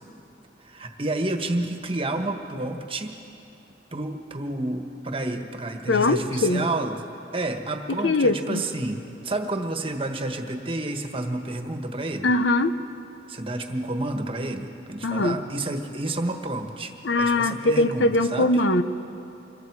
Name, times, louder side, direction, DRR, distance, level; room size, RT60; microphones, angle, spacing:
voice 1, 0.6-3.2 3.9-6.9 7.3-12.3 13.3-16.9 17.2-18.5, right 2 dB, 30° right, 5 dB, 1.4 m, -30 dB
voice 2, 5.9-6.7 8.0-8.6 12.2-12.8 15.0-15.4 17.0-18.8, left 2 dB, 85° left, 11 dB, 0.8 m, -21 dB
26.0 x 22.0 x 4.8 m, 2.8 s
head